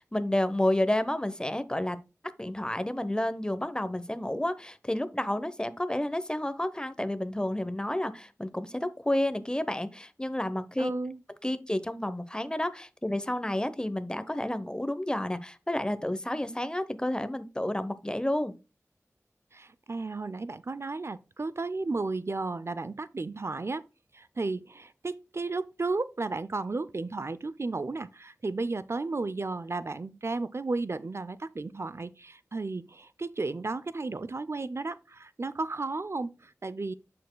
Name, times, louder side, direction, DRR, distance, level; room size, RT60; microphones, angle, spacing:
voice 1, 0.1-2.0 2.4-10.9 11.4-18.5, left 1 dB, 15° left, 0.8 m, -30 dB
voice 2, 10.8-11.2 19.5-23.8 24.1-36.9, right 3 dB, 55° right, 0.5 m, -33 dB
8.4 x 6.7 x 2.2 m
wide cardioid pair, 65°, 5 cm